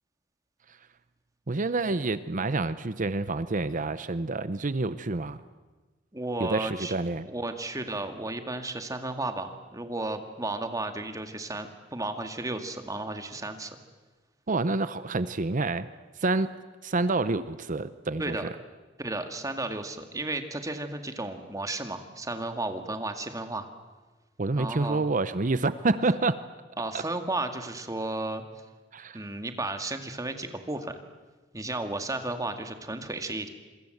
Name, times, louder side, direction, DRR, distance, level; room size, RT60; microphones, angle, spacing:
voice 1, 1.5-5.4 6.4-7.3 14.5-15.9 16.2-16.5 16.8-18.4 24.4-26.4 28.9-29.2, right 3 dB, 45° right, 13 dB, 0.8 m, -28 dB
voice 2, 6.1-7.0 7.2-13.8 18.2-18.5 19.0-23.7 24.6-25.0 26.8-28.6 29.1-31.0 31.5-33.5, right 2 dB, 20° right, 6 dB, 2.1 m, -33 dB
27.0 x 23.0 x 8.0 m, 1.3 s
head